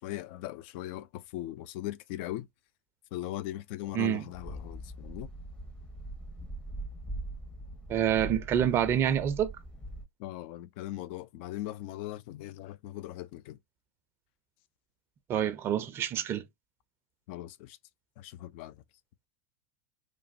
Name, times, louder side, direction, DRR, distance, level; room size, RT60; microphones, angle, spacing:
voice 1, 0.0-2.5 3.1-5.3 10.2-13.6 17.3-17.8 18.2-18.8, left 14 dB, 55° left, 0.4 m, -39 dB
sound 1, 4.3-10.0, right 1 dB, 15° left, 0.7 m, -41 dB
voice 2, 7.9-9.5 15.3-16.4, right 9 dB, 35° right, 0.5 m, -27 dB
3.2 x 2.0 x 2.5 m
figure-of-eight pair, 85°, 7 cm